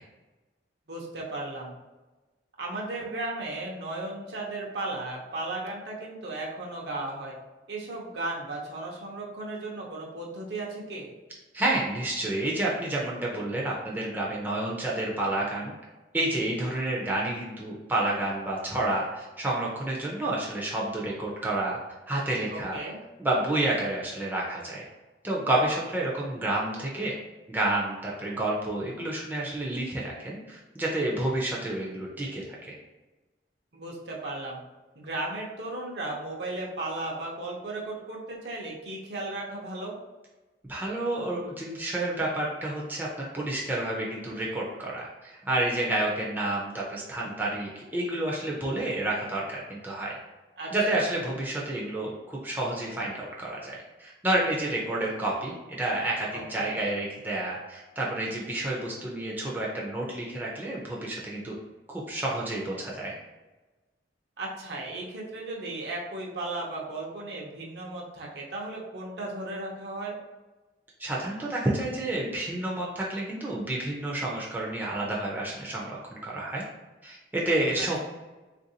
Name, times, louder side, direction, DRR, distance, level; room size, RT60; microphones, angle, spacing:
voice 1, 0.9-1.7 2.6-7.3 7.7-11.1 22.5-23.0 33.7-34.6 35.0-39.9 50.6-51.0 56.3-56.8 64.4-70.1 77.8-78.0, right 2 dB, 65° right, -2 dB, 0.7 m, -35 dB
voice 2, 11.5-15.7 16.1-21.8 22.1-22.8 23.2-24.8 25.2-27.1 27.5-32.7 40.7-50.2 50.7-61.5 61.9-63.1 71.0-76.6 77.0-78.0, right 1 dB, 10° right, -4 dB, 0.5 m, -30 dB
3.4 x 2.5 x 2.7 m, 1.2 s
head